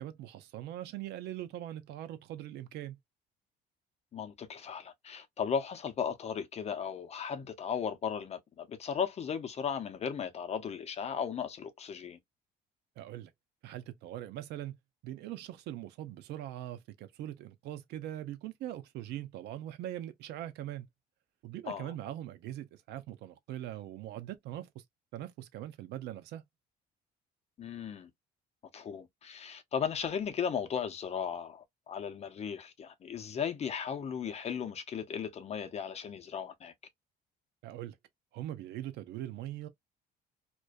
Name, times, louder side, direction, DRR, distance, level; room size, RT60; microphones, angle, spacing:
voice 1, 0.0-3.0 13.0-13.3 13.6-14.8 15.0-20.9 21.4-24.8 25.1-26.4 37.6-38.0 38.3-39.7, right 13 dB, 80° right, 0.5 m, -41 dB
voice 2, 4.1-12.2 21.7-21.9 27.6-28.1 28.7-36.7, left 7 dB, 40° left, 0.6 m, -36 dB
2.5 x 2.2 x 2.2 m
cardioid pair, 110°, 17 cm